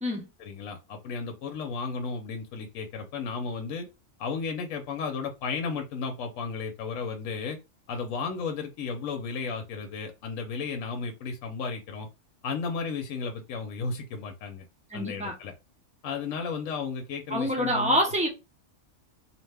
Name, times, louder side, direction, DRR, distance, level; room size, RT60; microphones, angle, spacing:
voice 1, 0.4-3.9 4.2-7.6 7.9-12.1 12.4-14.6 14.9-15.5 16.0-18.0, left 5 dB, 75° left, 1.0 m, -34 dB
voice 2, 14.9-15.3 17.3-18.3, equal, 10° right, 0.4 m, -26 dB
2.7 x 2.1 x 3.3 m
omnidirectional pair, 1.4 m